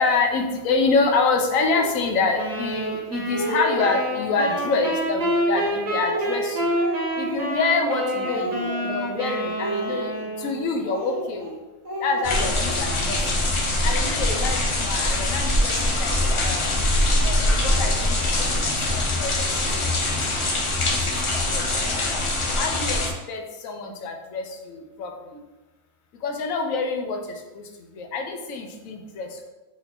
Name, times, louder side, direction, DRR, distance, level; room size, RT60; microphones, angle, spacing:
voice 1, 0.0-6.7 7.2-11.6 12.0-13.3 13.8-16.9 17.2-19.9 20.3-20.6 20.9-21.0 21.3-22.2 22.6-25.4 26.2-29.5, left 4 dB, 75° left, 3 dB, 1.1 m, -27 dB
Speech, 1.7-2.0 2.7-2.8 3.1-4.0 4.4-5.0 5.6-7.8 8.1-9.1 9.5-10.5 10.8-11.5 11.8-13.0, right 1 dB, 65° right, 1.7 m, -33 dB
sound 1, 2.4-10.7, equal, 40° right, 0.7 m, -28 dB
sound 2, 12.2-23.1, left 1 dB, 55° left, 0.3 m, -23 dB
4.4 x 2.8 x 4.2 m, 1.1 s
omnidirectional pair, 1.4 m